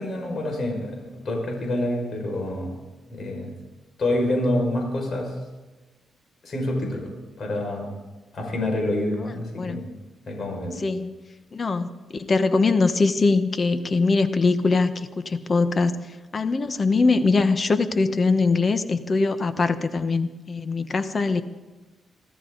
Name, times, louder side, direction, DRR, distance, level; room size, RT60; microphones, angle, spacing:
voice 1, 0.0-2.7 3.1-3.5 4.0-5.3 6.4-8.0 8.3-9.8 10.3-10.7, left 1 dB, 55° left, 1 dB, 5.8 m, -27 dB
voice 2, 10.8-11.1 11.5-15.9 16.3-21.4, left 3 dB, 40° left, 11 dB, 1.1 m, -22 dB
25.0 x 13.5 x 4.0 m, 1.2 s
cardioid pair, 85°, 0 cm